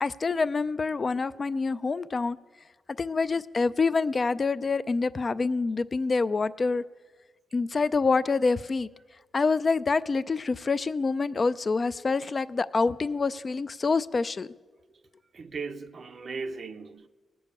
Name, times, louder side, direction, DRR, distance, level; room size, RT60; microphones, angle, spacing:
voice 1, 0.0-2.4 3.0-6.8 7.5-8.9 9.3-14.5, left 4 dB, 35° left, 0.4 m, -26 dB
voice 2, 15.3-17.1, right 4 dB, 50° right, 0.5 m, -37 dB
18.5 x 7.0 x 8.2 m
cardioid pair, 110°, 0 cm